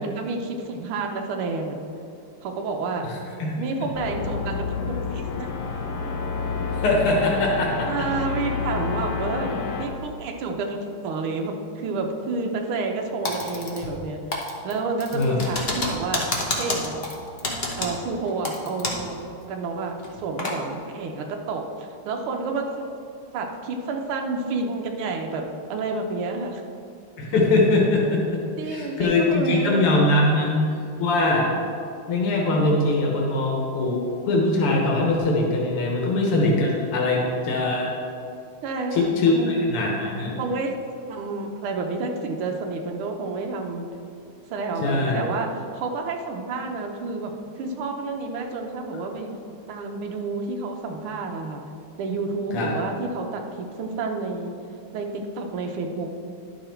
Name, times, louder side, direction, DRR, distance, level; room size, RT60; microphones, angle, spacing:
voice 1, 0.0-1.8 2.4-3.1 3.6-5.5 7.9-16.3 16.6-17.0 17.8-19.2 19.5-22.9 23.3-25.4 25.7-26.6 28.6-29.9 38.6-39.5 40.4-40.8 41.1-43.9 44.5-49.3 49.7-51.6 52.0-54.6 54.9-56.1, right 3 dB, 75° right, 2 dB, 1.7 m, -29 dB
voice 2, 3.0-3.5 3.8-3.9 6.8-7.9 15.1-15.4 27.2-30.6 31.0-31.5 32.1-34.0 34.3-37.9 38.9-40.4 44.8-45.2 52.5-52.7, left 2 dB, 90° left, -2 dB, 2.1 m, -22 dB
sound 1, 3.9-9.9, left 5 dB, 65° left, 1.1 m, -29 dB
Typing, 13.2-14.0 14.3-19.1 19.4-19.5 20.0-20.6, left 2 dB, 40° left, 0.9 m, -29 dB
11.0 x 5.8 x 4.4 m, 2.5 s
omnidirectional pair, 2.4 m